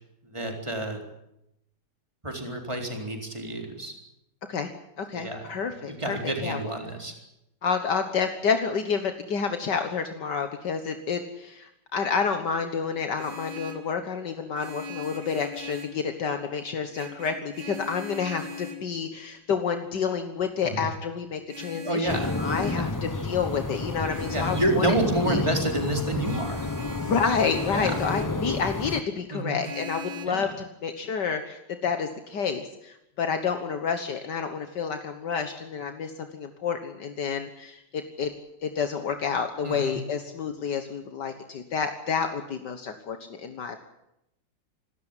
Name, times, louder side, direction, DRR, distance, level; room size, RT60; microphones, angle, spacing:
voice 1, 0.2-1.0 2.2-3.9 5.1-5.5 5.8-7.1 20.6-20.9 21.7-22.3 22.7-22.9 24.3-26.7 27.7-28.0 29.3-29.6 30.3-30.5 39.6-40.0, right 1 dB, 15° right, 2 dB, 4.1 m, -29 dB
voice 2, 5.0-6.6 7.6-22.1 22.4-24.9 25.3-25.5 27.0-30.5 30.8-38.3 38.6-43.8, left 6 dB, 70° left, 7 dB, 2.0 m, -29 dB
Vehicle horn car horn honking, 13.0-13.9 14.5-16.0 16.9-18.9 21.5-22.9 24.1-24.8 26.2-28.4 29.6-30.3, left 4 dB, 80° right, 3.4 m, -39 dB
sound 1, 22.1-29.0, left 2 dB, 20° left, 0.6 m, -30 dB
27.0 x 13.5 x 9.8 m, 0.83 s
omnidirectional pair, 1.9 m